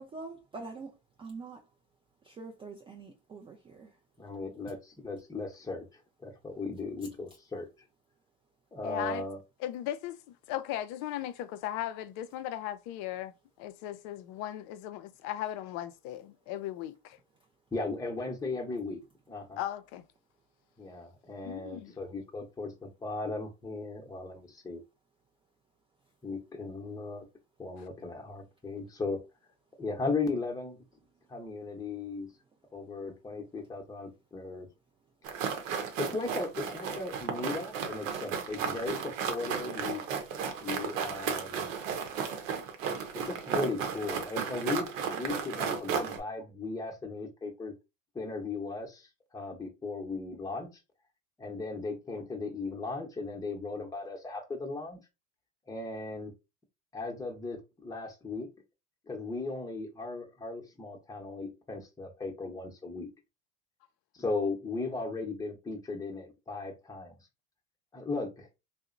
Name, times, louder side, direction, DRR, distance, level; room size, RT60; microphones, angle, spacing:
voice 1, 0.0-1.6 2.2-3.9, right 3 dB, 15° right, 0.3 m, -45 dB
voice 2, 4.2-7.7 8.7-9.4 17.7-19.0 19.3-19.6 20.8-24.8 26.2-27.2 27.6-29.2 29.8-30.8 31.3-32.3 32.7-34.7 36.0-40.0 40.6-41.7 43.3-47.7 48.1-50.8 51.4-55.0 55.7-56.3 56.9-58.5 59.1-63.1 64.1-67.1 67.9-68.5, left 3 dB, 10° left, 0.7 m, -37 dB
voice 3, 8.8-9.2 9.6-17.2 19.6-20.1 21.4-21.9 27.8-27.9, left 12 dB, 50° left, 0.5 m, -37 dB
sound 1, 35.2-46.2, right 6 dB, 80° right, 0.8 m, -34 dB
2.7 x 2.0 x 2.5 m
hypercardioid pair, 90°, 38 cm